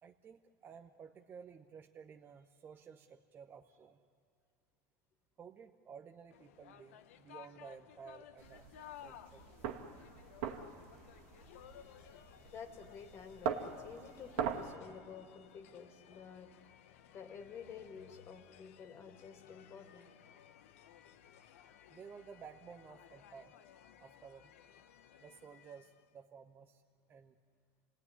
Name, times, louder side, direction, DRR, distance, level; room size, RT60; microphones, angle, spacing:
voice 1, 0.0-4.0 5.4-8.8 9.0-9.6 21.9-23.5 24.0-24.5 25.2-26.8 27.1-27.4, right 6 dB, 30° right, 4 dB, 0.9 m, -54 dB
sound 1, 6.3-26.1, left 10 dB, 90° left, 1.0 m, -58 dB
sound 2, 8.4-14.7, right 8 dB, 75° right, 2.0 m, -42 dB
voice 2, 12.4-16.5 17.1-20.1, left 7 dB, 40° left, 5 dB, 2.5 m, -51 dB
28.5 x 18.0 x 9.9 m, 2.3 s
supercardioid pair, 130°, 7 cm